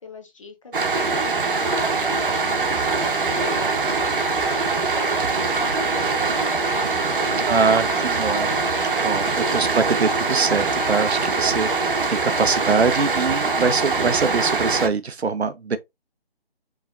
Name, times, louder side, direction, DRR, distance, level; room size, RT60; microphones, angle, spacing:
voice 1, 0.0-2.7 3.3-9.1 9.5-10.2, left 2 dB, 30° left, 0.9 m, -39 dB
sound 1, 0.7-14.9, right 4 dB, 55° right, 0.9 m, -23 dB
voice 2, 7.5-8.5 9.0-15.8, right 4 dB, 85° right, 0.8 m, -23 dB
4.8 x 3.2 x 2.5 m
figure-of-eight pair, 160°, 32 cm